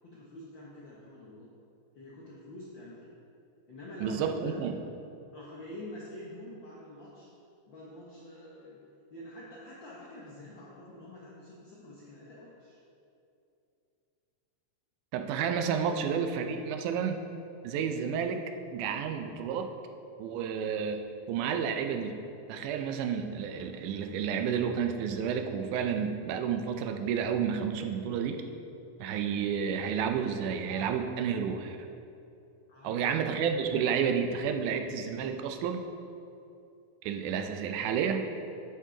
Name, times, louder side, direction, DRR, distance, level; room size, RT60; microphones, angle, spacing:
voice 1, 0.0-1.5 2.0-3.1 3.7-4.5 5.3-7.3 7.7-8.8 9.1-12.8 32.7-33.1, left 1 dB, 70° left, -6 dB, 1.1 m, -46 dB
voice 2, 4.0-4.8 15.1-17.2 17.6-18.4 18.7-19.7 20.2-21.0 21.3-22.2 22.5-28.4 29.0-31.8 32.8-35.9 37.0-38.3, right 7 dB, 85° right, 6 dB, 2.1 m, -30 dB
11.5 x 5.4 x 3.8 m, 2.7 s
omnidirectional pair, 3.6 m